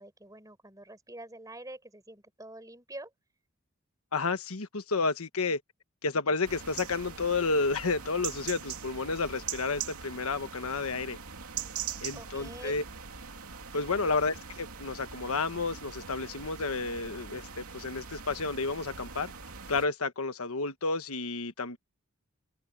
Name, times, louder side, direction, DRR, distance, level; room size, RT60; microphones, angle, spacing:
voice 1, 0.0-3.1 12.1-12.7, right 1 dB, 15° right, 4.4 m, -46 dB
voice 2, 4.1-5.6 6.0-11.2 12.0-12.8 13.7-19.3 19.7-21.8, left 3 dB, 80° left, 1.2 m, -31 dB
sound 1, 6.4-19.9, right 7 dB, 90° right, 2.8 m, -42 dB
head